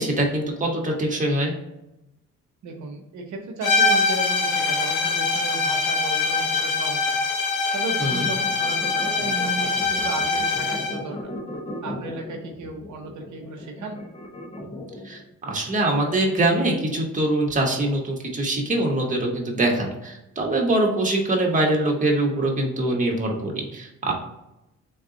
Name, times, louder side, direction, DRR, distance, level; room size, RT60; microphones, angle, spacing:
voice 1, 0.0-1.5 8.0-8.3 15.0-24.1, right 1 dB, 25° right, -1 dB, 1.1 m, -23 dB
voice 2, 2.6-7.2 7.7-11.3 11.8-14.0, right 3 dB, 75° right, 1 dB, 0.8 m, -35 dB
sound 1, 3.6-11.0, left 4 dB, 90° left, 0.7 m, -23 dB
sound 2, 8.5-15.2, left 1 dB, 20° left, 0.7 m, -37 dB
3.6 x 2.4 x 3.8 m, 0.89 s
cardioid pair, 90°, 30 cm